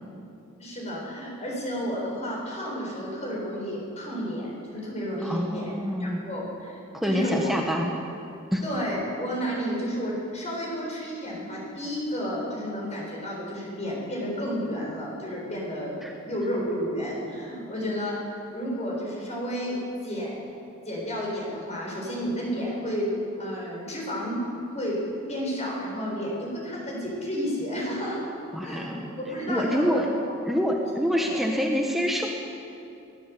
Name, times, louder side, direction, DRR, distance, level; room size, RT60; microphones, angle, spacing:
voice 1, 0.6-5.7 6.0-7.5 8.6-16.0 16.2-18.2 18.5-20.5 20.9-23.1 23.4-24.4 24.6-25.0 25.3-28.2 28.6-28.9 29.2-30.0 31.2-31.4, equal, 30° left, -3 dB, 7.4 m, -31 dB
voice 2, 5.2-6.3 6.9-7.9 8.5-8.6 16.0-16.1 28.5-29.2 29.5-30.1 30.5-32.3, equal, ahead, 0 dB, 1.5 m, -26 dB
23.0 x 17.5 x 8.5 m, 2.7 s
head